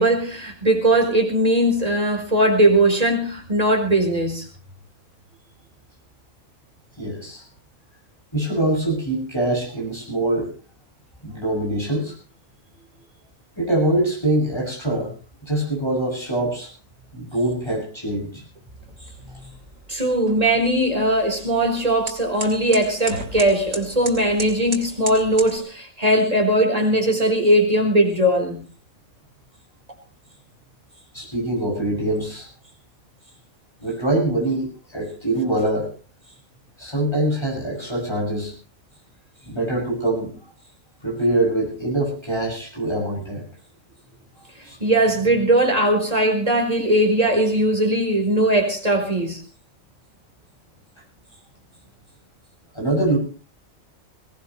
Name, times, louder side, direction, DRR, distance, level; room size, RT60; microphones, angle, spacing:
voice 1, 0.0-4.5 19.2-19.3 19.9-28.6 44.8-49.4, right 1 dB, 25° right, 4.5 m, -19 dB
voice 2, 7.0-7.4 8.3-10.5 11.2-12.1 13.6-15.1 15.4-16.7 17.1-18.4 31.1-32.5 33.8-35.9 36.8-38.5 39.4-40.3 41.0-43.4 44.6-44.8 52.7-53.2, right 1 dB, 20° left, 8.0 m, -24 dB
sound 1, 18.8-25.6, right 2 dB, 85° right, 3.5 m, -37 dB
21.5 x 18.5 x 3.2 m
omnidirectional pair, 1.4 m